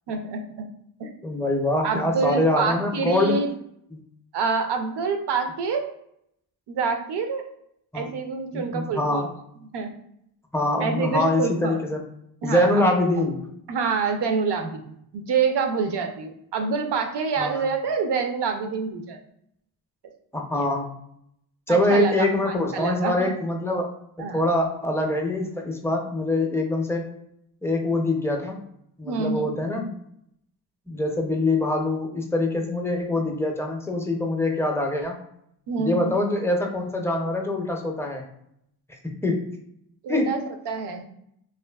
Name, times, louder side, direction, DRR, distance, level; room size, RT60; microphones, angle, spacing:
voice 1, 0.1-0.6 1.0-1.1 1.8-3.5 4.3-5.9 6.7-7.4 7.9-9.3 9.7-9.9 10.8-11.8 12.4-12.9 13.7-19.2 20.5-20.7 21.7-23.3 24.2-24.4 29.0-29.5 35.7-36.1 40.0-40.4 40.7-41.0, right 5 dB, 75° right, 5 dB, 0.5 m, -27 dB
voice 2, 1.2-3.4 3.9-4.0 7.9-8.1 8.5-9.3 10.5-12.0 12.4-13.4 17.4-17.7 20.3-20.9 21.7-23.9 24.3-27.1 27.6-28.6 29.0-30.0 30.9-35.2 35.8-38.2 39.2-39.5 40.1-40.4, left 1 dB, 5° left, 1 dB, 0.4 m, -24 dB
2.6 x 2.4 x 2.2 m, 0.74 s
cardioid pair, 75°, 41 cm